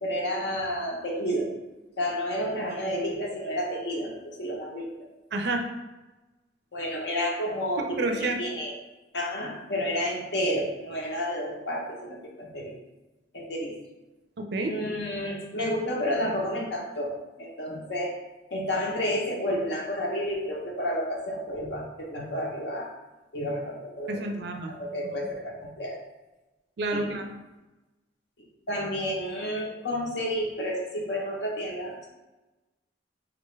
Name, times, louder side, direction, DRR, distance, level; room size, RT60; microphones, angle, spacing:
voice 1, 0.0-1.5 2.0-4.9 6.7-8.7 9.1-12.7 13.3-13.7 14.7-18.2 18.5-22.9 23.3-24.2 24.7-26.0 26.9-27.1 28.7-32.1, equal, 65° left, -1 dB, 0.7 m, -30 dB
voice 2, 5.3-5.6 7.9-8.4 14.4-14.8 24.1-24.7 25.0-25.1 26.8-27.4, right 2 dB, 60° right, 4 dB, 0.4 m, -29 dB
3.9 x 2.2 x 3.1 m, 1.1 s
head